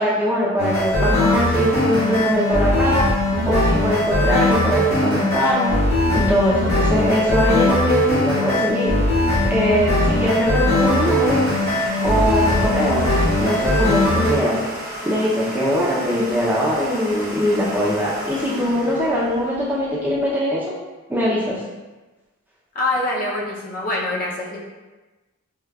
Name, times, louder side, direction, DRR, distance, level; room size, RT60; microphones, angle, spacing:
voice 1, 0.0-3.1 3.5-5.7 6.1-8.9 9.3-11.4 11.8-13.0 13.4-14.6 15.0-20.6 21.1-21.6, equal, 10° right, -7 dB, 0.5 m, -21 dB
sound 1, 0.6-14.3, left 1 dB, 85° left, 1.4 m, -20 dB
Domestic sounds home sounds, 9.7-20.3, right 1 dB, 40° right, 0.9 m, -33 dB
voice 2, 22.7-24.6, left 2 dB, 40° left, -4 dB, 0.6 m, -24 dB
4.7 x 2.3 x 2.3 m, 1.2 s
head